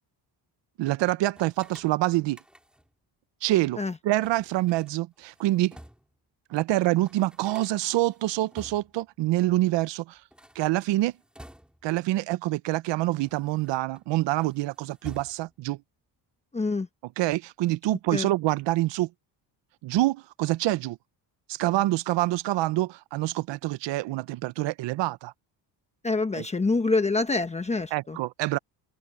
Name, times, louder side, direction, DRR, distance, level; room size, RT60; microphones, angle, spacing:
voice 1, 0.8-2.4 3.4-3.8 4.0-5.8 6.5-10.2 10.5-11.1 11.8-15.8 17.2-19.1 19.8-21.0 21.5-25.3 26.4-26.5 27.9-28.6, right 16 dB, 70° right, 0.8 m, -26 dB
sound 1, 1.3-3.0 4.2-6.2 6.6-6.7 6.9-9.1 10.2-12.0 12.7-14.0 14.3-15.7, equal, ahead, 5.6 m, -51 dB
voice 2, 16.5-16.9 18.1-18.3 26.0-28.2, left 3 dB, 15° left, 1.0 m, -26 dB
cardioid pair, 125°, 45 cm